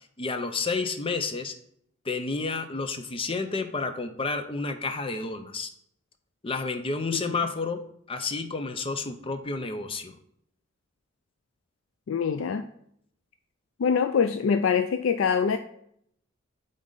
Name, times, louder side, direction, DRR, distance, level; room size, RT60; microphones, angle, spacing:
voice 1, 0.2-1.5 2.0-5.7 6.4-7.8 8.1-10.2, left 4 dB, 30° left, 8 dB, 0.6 m, -30 dB
voice 2, 12.1-12.6 13.8-15.6, left 6 dB, 75° left, 9 dB, 0.4 m, -24 dB
8.8 x 3.9 x 3.9 m, 0.70 s
head